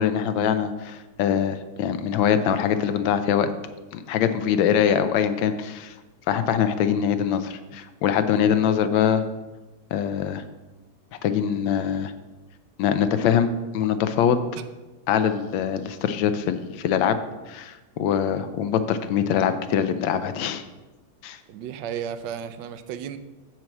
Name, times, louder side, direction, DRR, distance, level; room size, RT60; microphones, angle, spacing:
voice 1, 0.0-3.5 3.9-5.9 6.3-9.2 9.9-10.4 11.2-12.1 12.8-13.5 13.7-14.4 15.1-17.2 17.5-20.6 21.2-21.4, left 8 dB, 75° left, 10 dB, 1.3 m, -23 dB
voice 2, 21.5-23.2, right 8 dB, 75° right, 11 dB, 1.1 m, -34 dB
7.6 x 4.5 x 7.0 m, 1.2 s
omnidirectional pair, 2.3 m